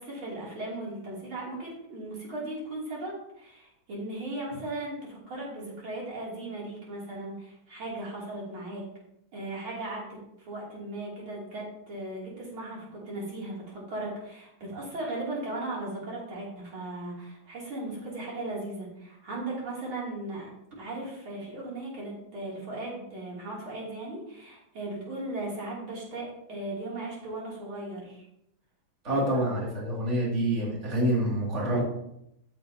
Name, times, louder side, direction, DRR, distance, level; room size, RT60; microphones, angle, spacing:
voice 1, 0.0-8.8 9.3-20.5 20.8-28.2 29.1-29.4, right 2 dB, 85° right, -5 dB, 3.8 m, -37 dB
voice 2, 29.0-31.8, right 1 dB, 35° right, -5 dB, 2.8 m, -27 dB
14.0 x 6.8 x 2.8 m, 0.79 s
omnidirectional pair, 2.2 m